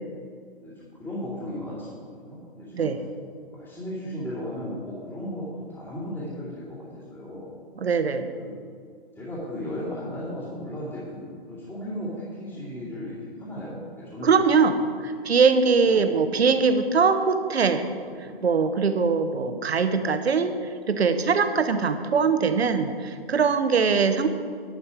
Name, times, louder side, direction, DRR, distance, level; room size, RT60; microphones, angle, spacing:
voice 1, 1.0-2.9 3.5-7.5 8.4-8.6 9.2-14.3 15.1-15.2 15.8-16.2 18.1-18.4, left 1 dB, 5° left, -12 dB, 2.5 m, -36 dB
voice 2, 7.8-8.3 14.2-17.9 18.4-20.5 20.9-24.3, right 5 dB, 85° right, 9 dB, 1.0 m, -22 dB
11.0 x 8.2 x 5.0 m, 2.1 s
hypercardioid pair, 145°, 31 cm